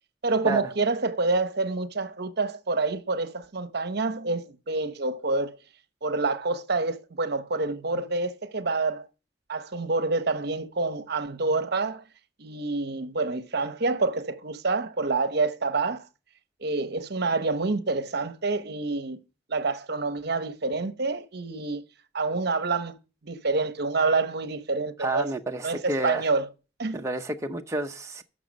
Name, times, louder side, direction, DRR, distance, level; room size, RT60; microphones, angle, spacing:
voice 1, 0.2-5.6 6.0-9.1 9.5-12.0 12.4-16.1 16.6-19.2 19.5-21.8 22.1-22.9 23.2-25.3 25.6-26.5 26.8-27.1, right 3 dB, 60° right, 1.0 m, -27 dB
voice 2, 25.0-26.2 26.9-28.2, right 2 dB, 15° right, 0.8 m, -30 dB
12.5 x 6.4 x 5.3 m
head